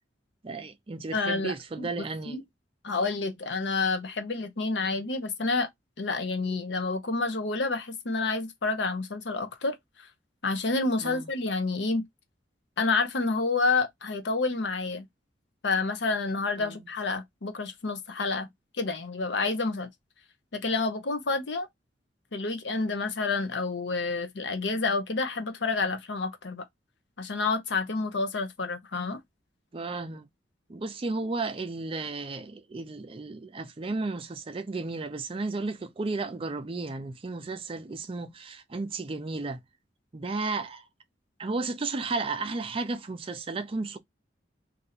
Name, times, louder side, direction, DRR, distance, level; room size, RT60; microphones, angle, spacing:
voice 1, 0.4-2.4 11.0-11.3 16.6-16.9 29.7-30.3 30.7-39.6 40.1-40.9 41.4-44.0, right 3 dB, 30° right, 0.4 m, -33 dB
voice 2, 1.1-2.4 2.8-5.7 6.0-9.8 10.4-12.0 12.8-15.1 15.6-18.5 18.8-19.9 20.5-21.7 22.3-26.6 27.2-29.2, left 3 dB, 70° left, 0.7 m, -29 dB
2.7 x 2.6 x 4.1 m
head